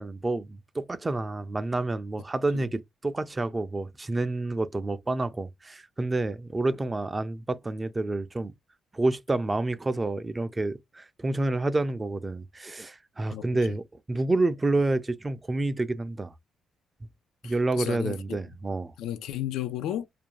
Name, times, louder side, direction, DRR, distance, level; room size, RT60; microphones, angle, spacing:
voice 1, 0.0-8.5 8.9-16.3 17.4-18.9, right 2 dB, 20° right, 0.4 m, -29 dB
voice 2, 17.4-18.4 19.0-20.1, left 12 dB, 90° left, 0.3 m, -33 dB
2.4 x 2.2 x 3.0 m
cardioid pair, 90°, 0 cm